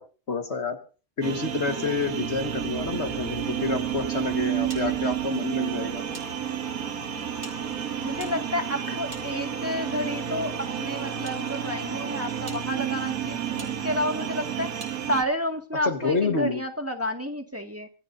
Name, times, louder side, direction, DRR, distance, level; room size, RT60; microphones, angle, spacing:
voice 1, 0.3-0.8 1.2-6.0 15.8-16.6, left 4 dB, 50° left, 6 dB, 1.9 m, -28 dB
sound 1, 1.2-15.2, right 10 dB, 80° right, 1.5 m, -31 dB
sound 2, 2.5-14.9 15.2-15.6, left 5 dB, 85° left, 2.0 m, -45 dB
sound 3, 4.7-6.3 6.6-6.7 7.4-9.8 10.6-11.4 11.9-12.0 12.4-12.6 13.6-13.7 14.8-15.0, right 2 dB, 55° right, 3.7 m, -46 dB
voice 2, 8.0-14.7 15.1-17.9, equal, 10° right, 4 dB, 1.9 m, -30 dB
25.5 x 15.5 x 2.7 m, 0.37 s
omnidirectional pair, 1.5 m